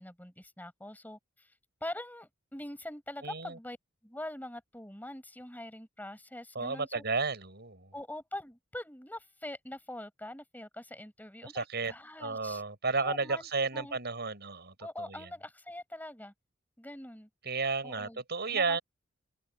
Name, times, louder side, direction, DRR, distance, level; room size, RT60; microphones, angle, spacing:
voice 1, 0.0-1.5 1.8-3.8 4.0-7.0 7.9-12.6 13.0-14.0 14.8-16.3 16.8-17.3 17.8-18.2 18.5-18.8, left 1 dB, 10° left, 7.4 m, -43 dB
voice 2, 3.2-3.6 6.5-7.9 11.4-11.9 12.2-15.3 17.5-18.8, right 4 dB, 55° right, 7.5 m, -33 dB
open air
head